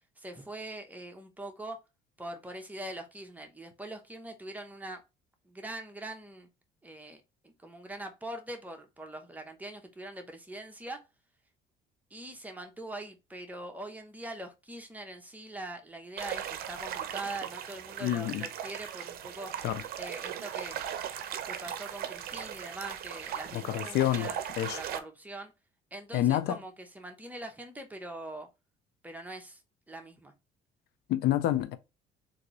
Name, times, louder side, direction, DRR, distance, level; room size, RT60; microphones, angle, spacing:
voice 1, 0.2-1.8 2.2-5.0 5.5-6.5 6.8-11.0 12.1-19.5 20.0-20.8 21.5-24.4 24.7-25.5 25.9-28.5 29.0-29.6 29.9-30.3, right 1 dB, 10° right, 0.8 m, -42 dB
sound 1, 16.2-25.0, right 9 dB, 65° right, 0.6 m, -38 dB
voice 2, 18.0-18.5 19.6-19.8 23.5-24.8 26.1-26.6 31.1-31.8, left 13 dB, 75° left, 0.4 m, -28 dB
3.7 x 2.7 x 3.0 m
cardioid pair, 110°, 17 cm